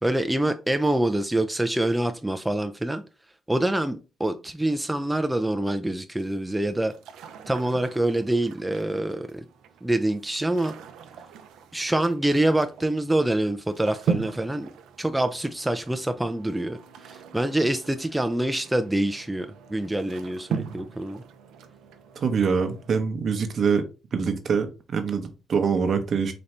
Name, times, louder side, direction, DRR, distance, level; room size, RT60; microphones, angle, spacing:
voice 1, 0.0-3.0 3.5-6.9 7.5-9.4 9.8-10.7 11.7-14.7 15.0-16.8 17.0-21.2, right 1 dB, 10° right, 0.4 m, -25 dB
sound 1, 6.2-23.0, right 6 dB, 85° right, 0.5 m, -39 dB
voice 2, 22.2-23.9 24.1-26.3, right 5 dB, 50° right, 0.7 m, -24 dB
4.1 x 2.6 x 3.2 m
cardioid pair, 90°, 0 cm